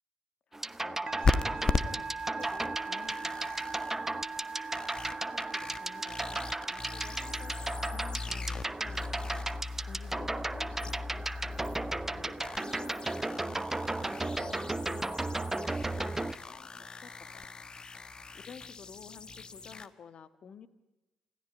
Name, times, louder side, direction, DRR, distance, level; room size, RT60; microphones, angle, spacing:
sound 1, 0.5-16.4, right 2 dB, 15° right, 1.0 m, -35 dB
voice 1, 0.8-4.2 4.7-11.5 12.0-13.6 14.0-17.7 18.3-20.7, left 7 dB, 50° left, 14 dB, 1.5 m, -52 dB
Musical instrument, 1.1-8.7, right 4 dB, 35° right, 0.8 m, -41 dB
sound 2, 1.2-3.9 4.4-19.9, left 4 dB, 35° left, 1.3 m, -38 dB
27.0 x 15.0 x 9.6 m, 1.0 s
hypercardioid pair, 45°, 2 cm